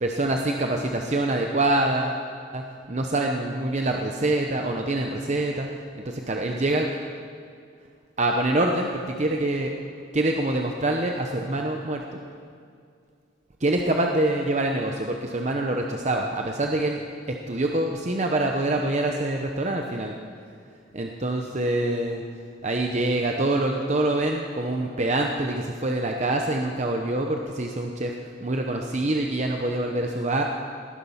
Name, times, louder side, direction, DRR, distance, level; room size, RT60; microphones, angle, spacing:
voice 1, 0.0-2.2 2.5-5.7 5.9-6.9 8.2-9.7 10.1-12.2 13.6-17.0 17.3-20.1 20.9-22.2 22.6-28.2 28.4-30.4, right 2 dB, 35° right, 2 dB, 0.8 m, -25 dB
18.5 x 10.5 x 5.7 m, 2.3 s
head